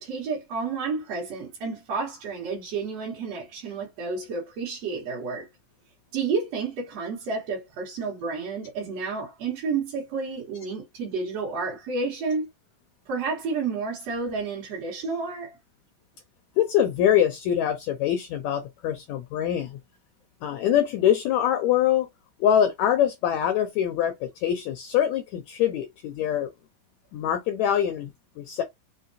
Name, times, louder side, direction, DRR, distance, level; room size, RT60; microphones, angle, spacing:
voice 1, 0.0-5.5 6.1-12.5 13.1-15.6, right 4 dB, 60° right, 2.1 m, -30 dB
voice 2, 16.6-19.8 20.4-22.1 22.4-26.5 27.1-28.6, left 10 dB, 80° left, 1.6 m, -24 dB
5.3 x 2.2 x 2.6 m
omnidirectional pair, 3.8 m